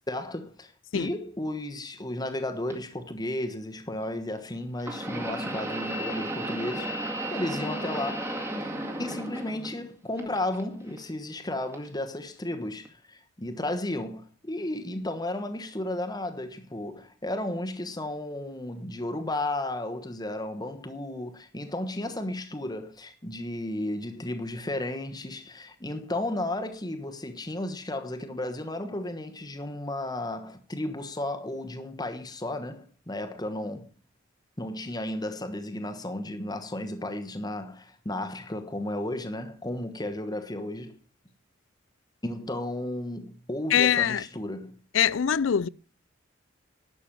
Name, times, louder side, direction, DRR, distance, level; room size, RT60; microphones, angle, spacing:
voice 1, 0.1-8.7 9.0-33.9 34.6-41.0 42.2-44.8, left 1 dB, 20° left, 1.2 m, -34 dB
sound 1, 2.7-2.8 4.8-9.9 10.2-11.0 11.7-11.9 12.8-12.9, right 1 dB, 15° right, 2.0 m, -34 dB
voice 2, 43.7-44.2 44.9-45.7, left 8 dB, 75° left, 0.5 m, -23 dB
11.5 x 7.0 x 7.4 m
head